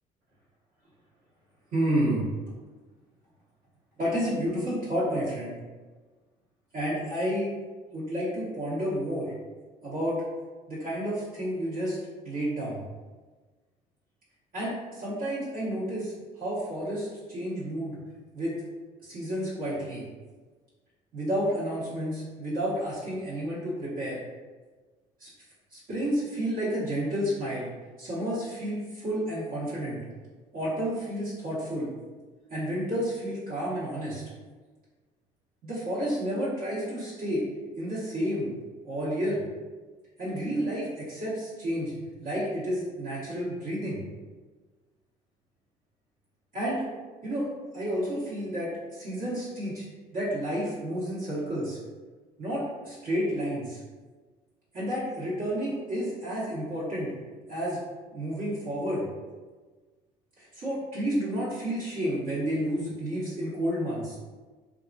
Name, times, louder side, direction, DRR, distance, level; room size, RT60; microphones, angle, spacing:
voice 1, 1.7-2.3 4.0-5.5 6.7-7.5 7.9-9.3 9.8-10.2 10.7-12.0 12.2-12.8 14.5-18.0 18.3-18.5 19.0-20.1 21.1-24.2 25.2-25.3 25.7-27.7 28.0-30.0 30.5-31.9 32.5-34.2 35.6-37.4 37.7-38.5 38.8-39.4 40.2-41.9 42.2-44.0 46.5-46.9 47.2-47.5 47.7-49.8 50.1-51.8 52.4-53.8 54.7-57.1 57.5-57.8 58.1-59.1 60.4-64.2, equal, 60° right, -10 dB, 1.2 m, -30 dB
2.8 x 2.4 x 2.5 m, 1.4 s
cardioid pair, 110°, 17 cm